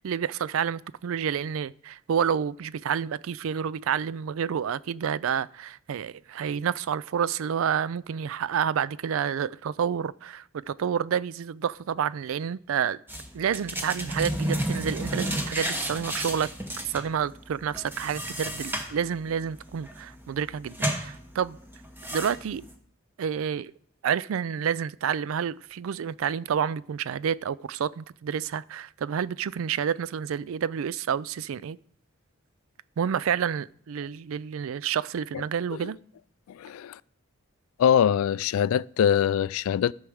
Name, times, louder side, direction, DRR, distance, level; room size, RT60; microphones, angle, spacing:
voice 1, 0.0-13.0 13.3-16.5 16.9-21.6 22.1-22.6 23.2-23.7 24.0-31.8 33.0-36.0, right 8 dB, 75° right, 0.3 m, -29 dB
sound 1, 13.1-22.7, right 1 dB, 10° right, 0.9 m, -33 dB
voice 2, 36.5-37.0 37.8-39.9, left 9 dB, 85° left, 0.3 m, -23 dB
13.5 x 4.8 x 6.3 m
head